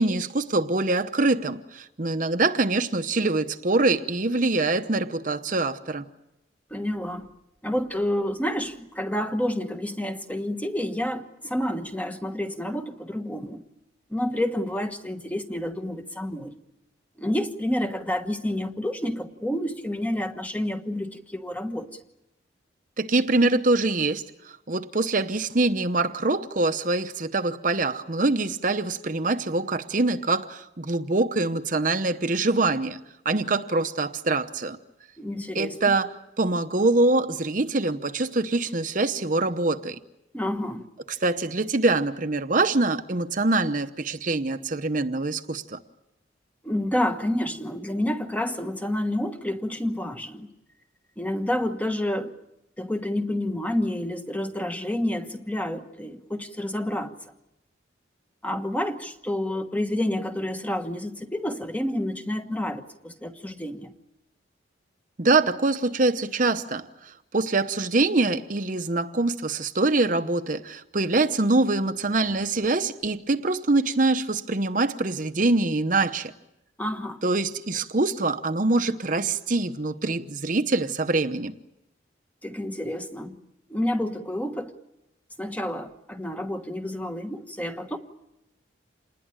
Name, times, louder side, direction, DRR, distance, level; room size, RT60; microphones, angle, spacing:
voice 1, 0.0-6.1 23.0-33.0 33.2-34.8 35.5-36.1 36.4-40.0 41.1-45.8 65.2-76.3 77.2-81.5, right 2 dB, 40° right, 9 dB, 0.9 m, -24 dB
voice 2, 6.7-7.3 7.6-13.6 14.1-16.6 17.2-22.0 35.2-36.0 40.3-40.9 46.6-50.5 51.2-52.3 52.8-57.1 58.4-63.9 76.8-77.2 82.4-83.4 83.7-84.7 85.4-88.0, left 1 dB, 10° left, 7 dB, 1.2 m, -29 dB
27.5 x 20.5 x 8.9 m, 0.89 s
head